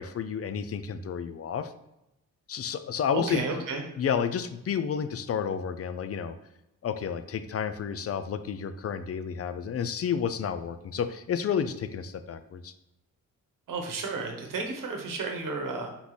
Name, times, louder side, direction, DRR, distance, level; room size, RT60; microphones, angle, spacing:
voice 1, 0.0-1.7 2.5-3.5 4.0-6.3 6.8-12.7, left 7 dB, 45° left, 11 dB, 0.4 m, -31 dB
voice 2, 3.1-3.8 13.7-15.9, right 4 dB, 65° right, 3 dB, 1.0 m, -32 dB
3.7 x 2.9 x 4.0 m, 0.91 s
cardioid pair, 60°, 35 cm